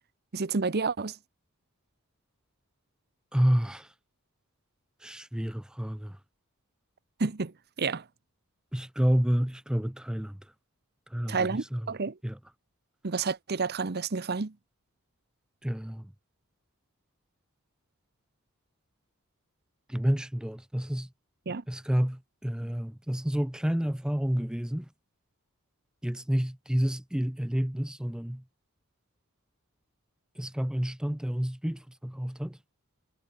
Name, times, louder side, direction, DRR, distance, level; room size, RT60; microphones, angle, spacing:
voice 1, 0.3-1.2 7.2-8.0 11.3-12.2 13.0-14.5 21.5-21.6, right 4 dB, 45° right, 0.8 m, -30 dB
voice 2, 3.3-3.9 5.0-6.2 8.7-10.4 11.1-11.8 12.2-12.4 15.6-16.1 19.9-21.1 21.7-24.9 26.0-28.4 30.4-32.6, equal, 5° right, 0.4 m, -29 dB
head